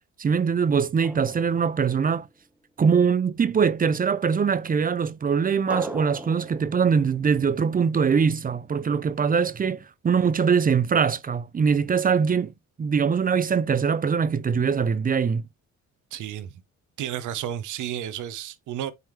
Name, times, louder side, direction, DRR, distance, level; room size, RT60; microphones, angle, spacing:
voice 1, 0.2-2.3 2.8-12.5 12.8-15.4, right 6 dB, 30° right, 0.6 m, -22 dB
Drum, 1.0-2.6 5.7-8.4, equal, 5° right, 0.9 m, -41 dB
voice 2, 16.1-16.6 17.0-18.9, right 11 dB, 80° right, 0.8 m, -32 dB
9.3 x 3.5 x 3.0 m
cardioid pair, 90°, 30 cm